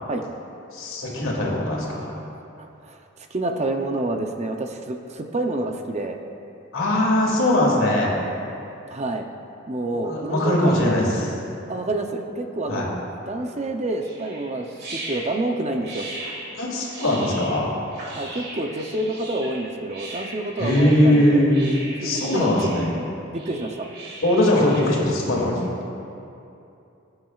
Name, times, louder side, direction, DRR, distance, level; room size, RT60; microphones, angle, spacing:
voice 1, 0.7-2.2 6.7-8.1 9.9-11.3 12.7-12.9 16.5-17.7 20.6-21.7 22.0-22.9 24.2-25.9, left 1 dB, 75° left, -3 dB, 2.4 m, -21 dB
voice 2, 2.6-3.0 3.3-6.2 8.9-9.3 9.7-10.9 11.7-12.9 13.3-16.1 18.2-21.5 22.0-22.7 23.3-23.9, right 2 dB, 35° right, 4 dB, 0.6 m, -28 dB
sound 1, 14.0-25.0, right 2 dB, 50° right, 2.3 m, -38 dB
19.0 x 8.9 x 2.4 m, 2.7 s
head